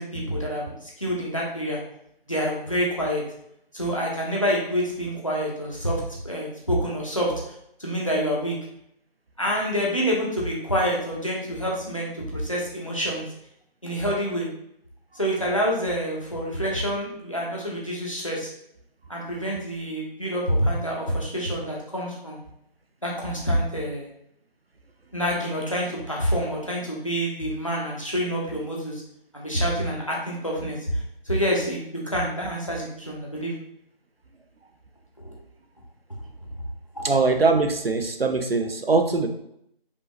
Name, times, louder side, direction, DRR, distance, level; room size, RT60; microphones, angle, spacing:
voice 1, 0.0-1.8 2.3-3.2 3.7-7.3 7.8-8.6 9.4-13.2 13.8-14.5 15.1-18.5 19.1-22.4 23.0-24.1 25.1-29.0 29.3-33.5 35.2-35.3 36.9-37.0, equal, 35° left, -3 dB, 0.9 m, -27 dB
voice 2, 37.0-39.3, right 3 dB, 75° right, 6 dB, 0.7 m, -22 dB
5.3 x 2.8 x 3.1 m, 0.75 s
figure-of-eight pair, 175°, 30 cm